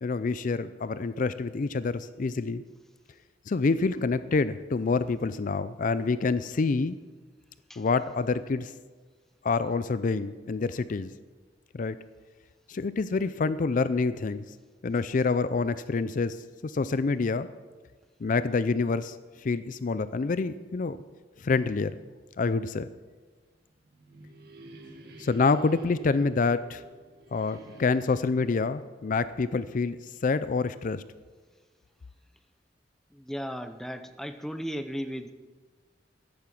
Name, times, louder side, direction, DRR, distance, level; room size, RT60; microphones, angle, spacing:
voice 1, 0.0-2.6 3.5-7.0 7.8-8.7 9.4-11.1 11.7-12.0 12.7-14.5 14.8-16.4 16.6-17.5 18.2-19.2 19.4-21.0 21.4-21.9 22.4-22.9 25.2-26.8 27.3-30.0 30.2-31.0, left 4 dB, 45° left, 14 dB, 0.4 m, -27 dB
sound 1, 23.5-30.2, right 1 dB, 55° right, 1.9 m, -50 dB
voice 2, 33.1-35.3, equal, ahead, 8 dB, 0.7 m, -36 dB
14.0 x 10.5 x 5.9 m, 1.4 s
head